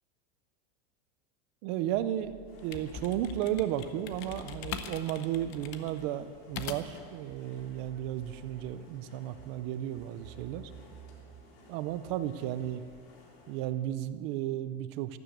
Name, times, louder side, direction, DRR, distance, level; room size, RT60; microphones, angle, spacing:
voice 1, 1.6-2.3 2.6-10.7 11.7-12.8 13.5-15.2, right 12 dB, 30° right, 13 dB, 0.4 m, -34 dB
sound 1, 1.7-13.0, right 12 dB, 55° right, 2.6 m, -55 dB
sound 2, 2.4-7.1, left 8 dB, 30° left, 0.7 m, -42 dB
sound 3, 2.5-13.6, left 2 dB, 60° left, 3.8 m, -57 dB
13.5 x 12.5 x 7.8 m, 2.3 s
supercardioid pair, 175°, 34 cm